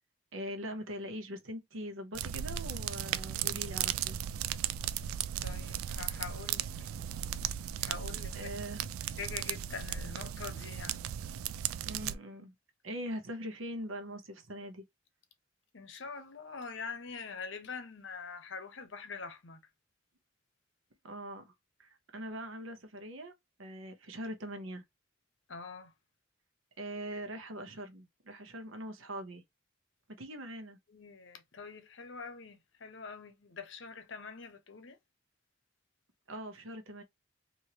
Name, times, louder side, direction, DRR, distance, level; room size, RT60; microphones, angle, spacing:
voice 1, 0.3-4.2 7.8-7.9 8.3-8.8 11.8-12.5 12.8-14.8 21.0-21.5 21.8-23.3 23.6-24.8 26.8-29.4 30.2-30.8 36.3-37.0, equal, 70° right, 0.9 m, -42 dB
sound 1, 2.1-12.2, right 10 dB, 90° right, 0.3 m, -36 dB
voice 2, 5.4-6.7 7.8-8.5 9.2-11.0 15.7-19.6 25.5-25.9 30.9-35.0, left 5 dB, 60° left, 0.7 m, -44 dB
3.1 x 2.7 x 2.8 m
head